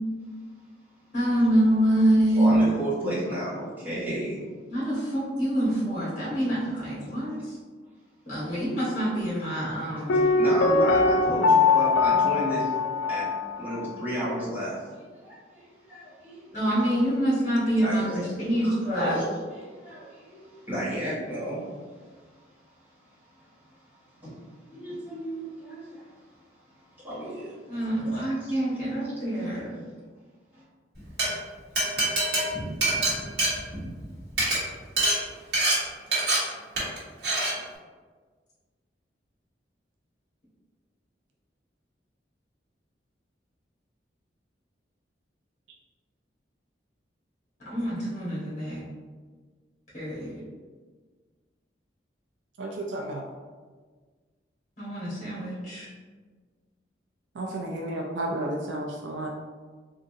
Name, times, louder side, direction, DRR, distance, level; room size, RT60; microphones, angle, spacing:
voice 1, 1.1-2.6 4.7-7.6 8.3-10.2 16.5-19.2 27.7-29.7 47.6-48.8 49.9-50.3 54.8-55.9, right 1 dB, 40° left, -9 dB, 1.4 m, -26 dB
voice 2, 2.4-4.4 10.2-12.7 13.1-13.3 13.6-14.8 15.2-16.5 17.8-18.2 18.6-21.7 22.0-22.2 23.3-23.8 24.2-24.4 24.7-26.2 27.0-28.8 29.3-29.4 30.5-30.6, equal, 10° right, -12 dB, 1.2 m, -33 dB
Piano, 10.1-13.9 14.1-14.2, left 3 dB, 90° left, 0.3 m, -22 dB
Glass, 31.0-31.3 31.8-34.0 34.3-34.6 35.0-35.2 35.5-35.8 36.1-36.4 36.8-37.0 37.2-37.5, right 2 dB, 65° right, 1.3 m, -24 dB
voice 3, 52.6-53.2 57.4-59.3, right 1 dB, 85° right, 0 dB, 0.4 m, -32 dB
3.6 x 2.5 x 2.7 m, 1.5 s
head